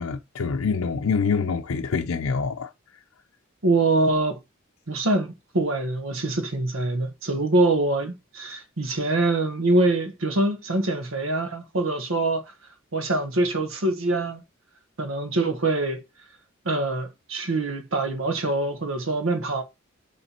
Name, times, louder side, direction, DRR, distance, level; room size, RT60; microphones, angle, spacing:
voice 1, 0.0-2.7, left 5 dB, 85° left, 0.5 m, -25 dB
voice 2, 3.6-4.4 4.9-12.4 12.9-14.4 15.0-16.0 16.6-19.6, right 2 dB, 75° right, 1.3 m, -24 dB
7.1 x 3.3 x 4.4 m
head